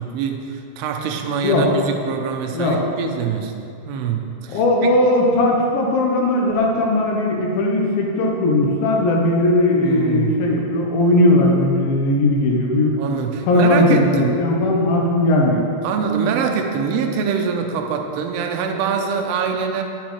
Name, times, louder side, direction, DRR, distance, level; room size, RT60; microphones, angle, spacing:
voice 1, 0.0-3.6 3.9-4.9 9.8-10.4 13.0-14.5 15.8-19.8, right 6 dB, 80° right, 4 dB, 2.7 m, -24 dB
voice 2, 4.5-13.0 13.5-15.7, left 1 dB, 70° left, -1 dB, 2.4 m, -18 dB
10.5 x 10.0 x 3.2 m, 2.5 s
omnidirectional pair, 4.8 m